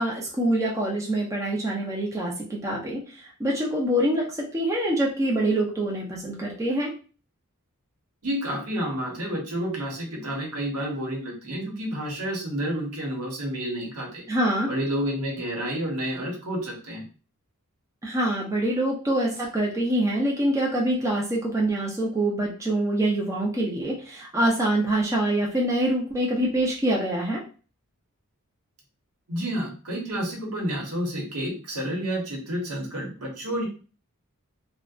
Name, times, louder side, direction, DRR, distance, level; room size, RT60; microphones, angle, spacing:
voice 1, 0.0-6.9 14.3-14.7 18.0-27.4, right 1 dB, 15° right, -2 dB, 0.5 m, -25 dB
voice 2, 8.2-14.2 14.7-17.0 29.3-33.7, equal, 80° right, -1 dB, 1.0 m, -30 dB
2.6 x 2.1 x 2.3 m, 0.36 s
head